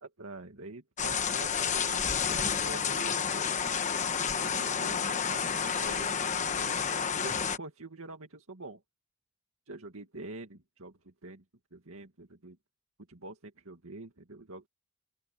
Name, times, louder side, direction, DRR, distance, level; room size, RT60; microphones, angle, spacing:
voice 1, 0.0-3.5 4.5-6.8 7.2-8.8 9.7-11.4 11.7-12.6 13.1-14.7, right 2 dB, 75° right, 2.2 m, -46 dB
sound 1, 1.0-7.6, left 6 dB, 35° left, 1.1 m, -30 dB
open air
head